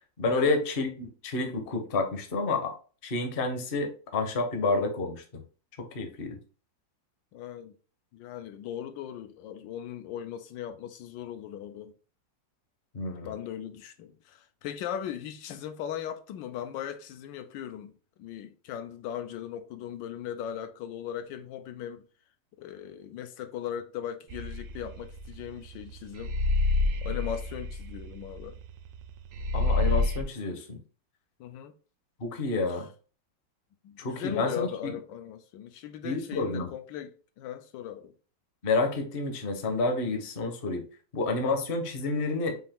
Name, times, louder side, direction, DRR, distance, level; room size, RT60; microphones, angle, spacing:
voice 1, 0.2-2.7 3.0-5.2 5.9-6.4 12.9-13.3 29.5-30.8 32.2-32.9 34.0-34.9 36.0-36.7 38.6-40.8 41.1-42.7, left 3 dB, 45° left, 0.8 m, -29 dB
voice 2, 7.3-7.7 8.1-11.9 13.2-17.9 18.2-22.1 22.6-26.3 27.0-28.6 31.4-31.7 32.7-32.8 33.8-38.1, left 9 dB, 90° left, 1.3 m, -38 dB
sound 1, 24.3-25.8 26.1-29.0 29.3-30.2, left 2 dB, 75° right, 0.7 m, -27 dB
5.7 x 2.5 x 3.5 m
omnidirectional pair, 1.9 m